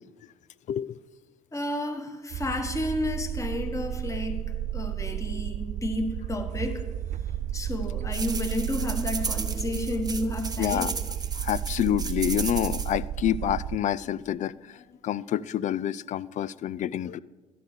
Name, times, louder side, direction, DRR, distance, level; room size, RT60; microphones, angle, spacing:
voice 1, 0.7-1.0 10.6-10.9 11.3-17.2, left 11 dB, 50° left, 19 dB, 0.4 m, -28 dB
voice 2, 1.5-4.4 4.7-6.8 7.5-10.9, left 1 dB, 20° left, 6 dB, 1.5 m, -31 dB
sound 1, 2.3-13.8, right 11 dB, 50° right, 0.4 m, -32 dB
sound 2, 8.1-12.9, right 4 dB, 25° right, 1.0 m, -35 dB
12.5 x 11.5 x 3.3 m, 1.3 s
hypercardioid pair, 55°, 16 cm